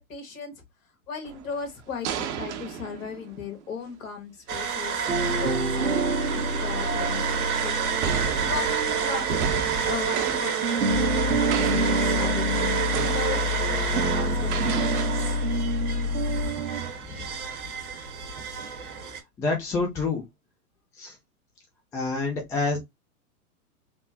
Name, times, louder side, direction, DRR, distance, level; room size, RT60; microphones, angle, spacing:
voice 1, 0.1-0.5 1.1-5.0 5.2-7.8 8.3-9.4 9.9-10.7 11.4-15.1, left 6 dB, 60° left, 1.4 m, -37 dB
sound 1, 1.2-3.8 5.2-5.4 6.2-7.2 7.7-11.2 11.5-12.5 12.9-13.9 14.5-15.0, right 6 dB, 50° right, 0.7 m, -34 dB
sound 2, 4.5-19.2, right 7 dB, 75° right, 1.0 m, -29 dB
sound 3, 5.1-10.3 10.6-16.9, equal, 90° right, 0.8 m, -27 dB
voice 2, 19.4-20.2 21.0-21.1 21.9-22.8, left 3 dB, 10° left, 0.4 m, -27 dB
3.4 x 2.1 x 2.7 m
figure-of-eight pair, 100°, 45 cm